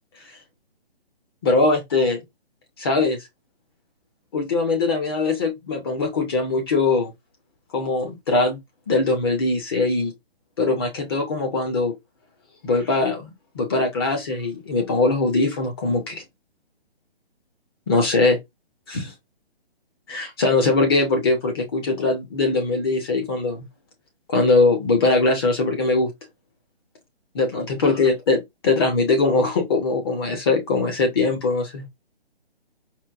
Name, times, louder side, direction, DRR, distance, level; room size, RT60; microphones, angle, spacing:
voice 1, 1.4-2.2 2.8-3.2 4.3-7.1 7.7-8.6 8.9-10.1 10.6-11.9 12.6-13.3 13.5-16.2 17.9-18.4 18.9-19.1 20.1-23.7 24.3-26.1 27.3-28.4 28.6-31.9, left 3 dB, 25° left, 0.7 m, -21 dB
4.4 x 2.1 x 2.4 m
hypercardioid pair, 155°, 31 cm